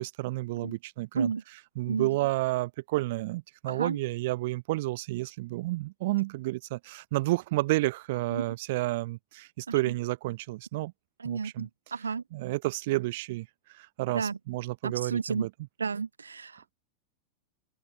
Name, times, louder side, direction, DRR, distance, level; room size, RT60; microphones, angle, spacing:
voice 1, 0.0-1.3 1.8-10.9 11.2-11.7 12.3-13.5 13.7-15.5, right 19 dB, 50° right, 6.6 m, -30 dB
voice 2, 3.7-4.0 8.3-8.4 9.7-9.9 11.2-12.2 14.1-14.4 14.8-15.5 15.8-16.7, right 5 dB, 75° right, 4.3 m, -32 dB
figure-of-eight pair, 90°, 0 cm